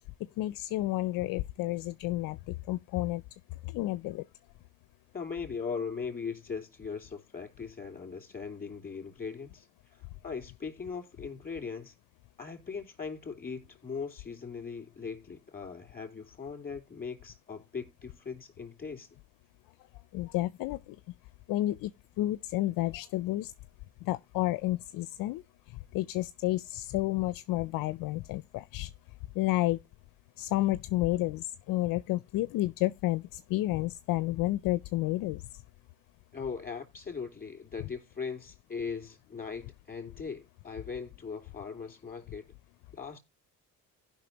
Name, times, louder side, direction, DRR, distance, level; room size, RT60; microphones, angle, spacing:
voice 1, 0.4-3.2 3.6-4.2 20.1-20.8 21.5-21.9 22.2-23.5 24.0-25.4 25.7-28.9 29.4-29.8 30.4-35.4, left 17 dB, 70° left, 0.5 m, -31 dB
voice 2, 5.1-11.9 12.4-19.1 36.3-42.5 42.9-43.2, left 5 dB, 25° left, 3.0 m, -39 dB
15.5 x 5.7 x 2.9 m
supercardioid pair, 70°, 35 cm